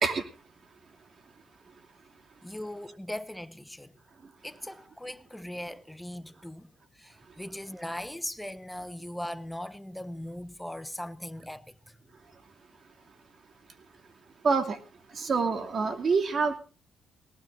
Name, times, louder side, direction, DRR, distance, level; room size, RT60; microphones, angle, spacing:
voice 1, 2.4-3.9 4.4-12.0, left 1 dB, 5° left, 1.1 m, -39 dB
voice 2, 14.4-14.8 15.1-16.6, right 4 dB, 45° right, 2.6 m, -26 dB
19.5 x 18.0 x 2.6 m
cardioid pair, 75°, 0 cm